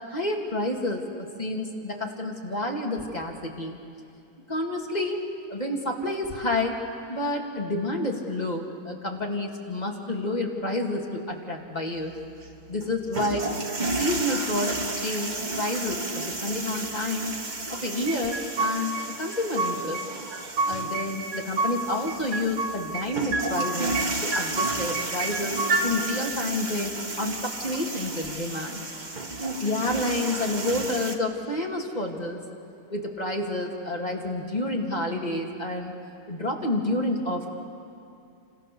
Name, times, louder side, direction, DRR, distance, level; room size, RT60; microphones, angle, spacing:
voice 1, 0.1-3.8 4.5-5.2 5.5-6.8 7.1-12.1 12.7-13.5 13.8-17.3 17.7-20.0 20.7-28.8 29.4-32.4 32.9-35.9 36.3-37.4, left 1 dB, 20° left, 0 dB, 2.4 m, -29 dB
sound 1, 12.0-31.2, right 2 dB, 25° right, 1.3 m, -33 dB
sound 2, 18.1-19.0 19.3-20.1 20.3-21.8 22.1-23.1 23.3-24.1 24.3-25.9, right 3 dB, 90° right, 3.5 m, -28 dB
30.0 x 26.5 x 7.0 m, 2.5 s
omnidirectional pair, 2.3 m